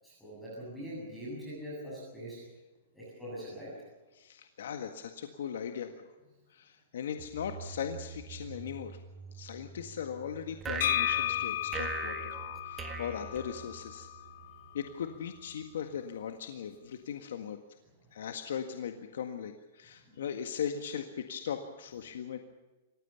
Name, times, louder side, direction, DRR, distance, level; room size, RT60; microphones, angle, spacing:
voice 1, 0.0-2.4 2.9-3.7, equal, ahead, -7 dB, 7.8 m, -42 dB
voice 2, 4.1-6.1 6.5-9.0 9.3-14.1 14.7-17.6 18.1-22.4, left 8 dB, 75° left, 7 dB, 1.7 m, -39 dB
sound 1, 7.2-16.0, right 6 dB, 30° right, 2.9 m, -50 dB
sound 2, 10.6-14.0, right 5 dB, 15° right, 1.8 m, -40 dB
sound 3, 10.8-14.6, left 12 dB, 60° left, 0.6 m, -34 dB
27.5 x 16.0 x 7.0 m, 1.2 s
hypercardioid pair, 165°, 0 cm